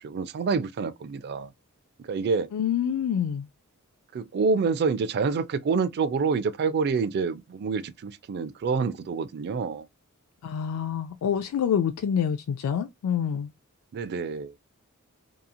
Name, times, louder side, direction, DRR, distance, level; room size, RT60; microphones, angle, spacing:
voice 1, 0.0-1.5 2.0-2.5 4.1-9.9 13.9-14.7, right 5 dB, 50° right, 0.3 m, -27 dB
voice 2, 2.5-3.5 10.4-13.5, left 8 dB, 80° left, 0.3 m, -27 dB
2.9 x 2.5 x 2.2 m
head